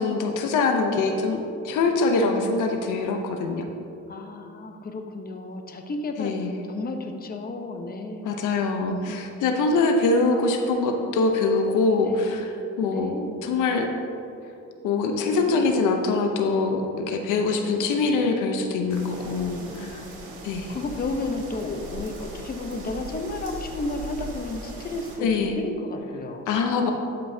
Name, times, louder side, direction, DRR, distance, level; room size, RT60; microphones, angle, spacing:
voice 1, 0.0-3.7 6.2-6.5 8.2-12.5 12.8-13.1 13.4-13.9 14.8-20.0 20.4-20.8 25.2-25.6 26.5-26.9, left 3 dB, 85° left, 4 dB, 0.7 m, -24 dB
voice 2, 4.1-8.3 8.9-9.1 12.0-12.3 12.8-13.5 15.0-15.8 17.3-18.0 19.6-20.2 20.7-26.5, left 2 dB, 30° left, 4 dB, 0.7 m, -33 dB
sound 1, 18.9-25.2, right 2 dB, 85° right, 1.7 m, -39 dB
12.0 x 5.4 x 2.7 m, 2.7 s
cardioid pair, 90°, 30 cm